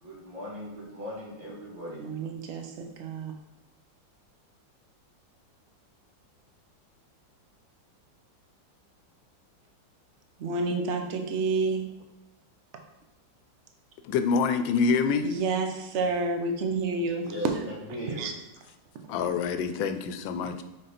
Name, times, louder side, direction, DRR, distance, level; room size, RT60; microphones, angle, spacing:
voice 1, 0.0-2.0 17.2-18.2, left 1 dB, 85° right, -6 dB, 3.1 m, -38 dB
voice 2, 2.0-3.3 10.4-11.9 15.2-17.3 18.1-18.3, right 3 dB, 55° right, 3 dB, 0.8 m, -29 dB
voice 3, 14.0-15.3 19.1-20.6, left 5 dB, 90° left, 9 dB, 1.4 m, -26 dB
6.6 x 4.0 x 4.2 m, 1.0 s
omnidirectional pair, 2.0 m